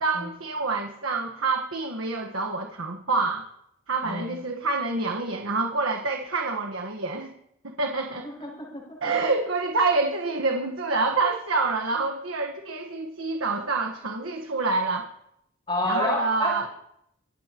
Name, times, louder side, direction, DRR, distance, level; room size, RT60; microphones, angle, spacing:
voice 1, 0.0-3.4 3.9-7.3 7.6-8.3 9.0-15.1 15.8-16.7, right 3 dB, 80° right, 3 dB, 1.4 m, -27 dB
voice 2, 4.0-4.3 8.2-8.8 15.7-16.5, left 1 dB, 30° left, -7 dB, 6.4 m, -28 dB
26.0 x 16.0 x 3.0 m, 0.78 s
head